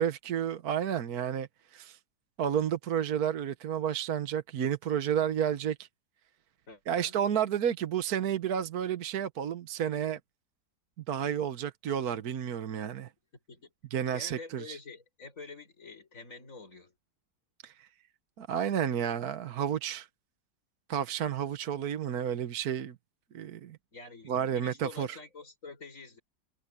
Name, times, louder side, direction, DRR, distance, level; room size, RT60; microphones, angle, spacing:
voice 1, 0.0-2.0 2.4-5.9 6.9-10.2 11.1-13.1 13.9-14.8 17.6-17.9 18.4-20.1 20.9-23.0 23.3-23.8 24.3-25.2, right 9 dB, 60° right, 1.5 m, -31 dB
voice 2, 6.7-7.2 13.5-13.7 14.1-16.9 23.3-23.4 23.9-26.2, left 3 dB, 45° left, 6.9 m, -47 dB
omnidirectional pair, 1.9 m